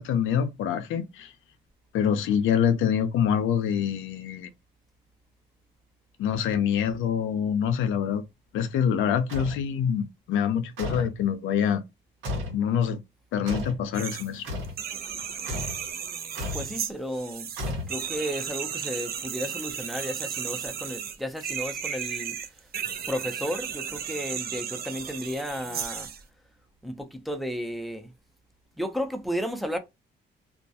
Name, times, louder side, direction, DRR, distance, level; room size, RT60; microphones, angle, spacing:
voice 1, 0.0-1.3 1.9-4.5 6.2-8.2 8.5-11.8 12.5-13.0 13.3-14.5, left 8 dB, 80° left, 0.5 m, -25 dB
sound 1, 9.3-9.6 10.8-11.2 12.2-12.6 13.5-13.8 14.4-14.8 15.5-15.8 16.3-16.7 17.6-18.2, left 1 dB, 90° right, 1.2 m, -33 dB
sound 2, 13.9-14.3 14.6-26.2, right 8 dB, 50° right, 0.5 m, -34 dB
voice 2, 16.5-17.5 17.9-22.4 23.1-26.1 26.8-28.1 28.8-29.8, equal, ahead, 0.5 m, -33 dB
2.3 x 2.1 x 2.7 m
cardioid pair, 90°, 20 cm